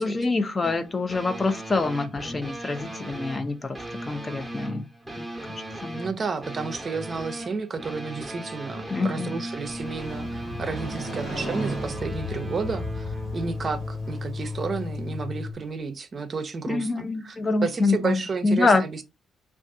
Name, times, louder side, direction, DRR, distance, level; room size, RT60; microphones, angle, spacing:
voice 1, 0.0-3.8 4.1-4.9 5.2-6.0 8.9-9.3 16.7-18.8, left 3 dB, 30° left, 0.4 m, -26 dB
sound 1, 0.6-15.5, left 1 dB, 5° right, 0.8 m, -36 dB
voice 2, 5.9-19.0, right 5 dB, 40° right, 0.5 m, -32 dB
Motorcycle, 9.5-15.4, equal, 70° left, 1.4 m, -36 dB
2.5 x 2.3 x 3.6 m
cardioid pair, 90°, 0 cm